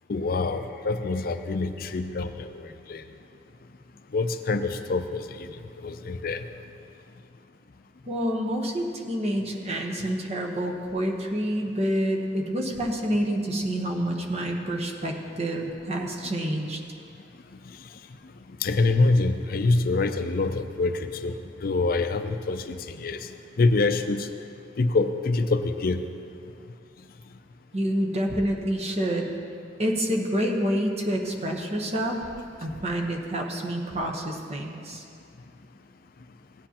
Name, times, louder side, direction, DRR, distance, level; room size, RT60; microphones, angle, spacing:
voice 1, 0.1-3.0 4.1-5.5 5.8-6.4 18.6-21.4 21.6-23.2 23.6-24.3 24.8-26.0, left 3 dB, 55° left, 9 dB, 0.5 m, -25 dB
voice 2, 8.1-16.8 27.7-29.3 29.8-32.2 32.6-35.0, equal, 35° right, 2 dB, 1.0 m, -28 dB
16.5 x 9.8 x 2.9 m, 2.4 s
head